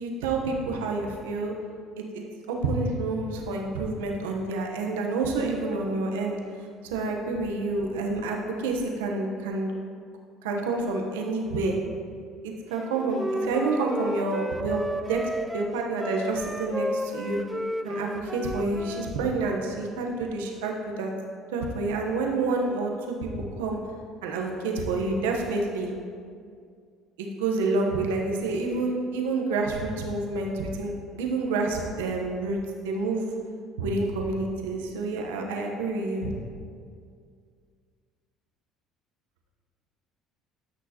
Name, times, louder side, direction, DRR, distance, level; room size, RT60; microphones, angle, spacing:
voice 1, 0.0-1.5 2.0-6.4 6.8-9.7 10.4-11.8 12.4-17.4 17.8-21.1 21.5-23.3 23.6-23.8 24.2-25.9 27.2-32.6 32.8-33.2 33.8-36.3, right 3 dB, 90° right, 1 dB, 1.0 m, -28 dB
Wind instrument woodwind instrument, 12.8-19.1, equal, 5° right, 0.4 m, -33 dB
13.0 x 6.2 x 2.9 m, 2.2 s
supercardioid pair, 80°, 0 cm